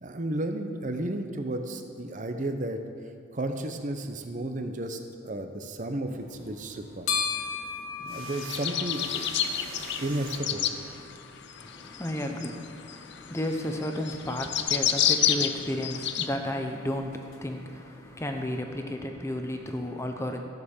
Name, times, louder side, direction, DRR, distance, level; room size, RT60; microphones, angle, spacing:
voice 1, 0.0-2.8 3.3-7.1 8.0-9.3 10.0-10.7, right 1 dB, 35° right, 6 dB, 0.8 m, -33 dB
sound 1, 6.1-18.6, left 6 dB, 75° left, 1.4 m, -40 dB
sound 2, 8.1-11.4, right 4 dB, 80° right, 1.3 m, -44 dB
sound 3, 8.4-10.8 11.5-16.3, left 10 dB, 55° left, 0.5 m, -28 dB
voice 2, 11.6-20.4, left 1 dB, 15° left, 4 dB, 0.8 m, -33 dB
14.5 x 6.5 x 7.2 m, 2.4 s
head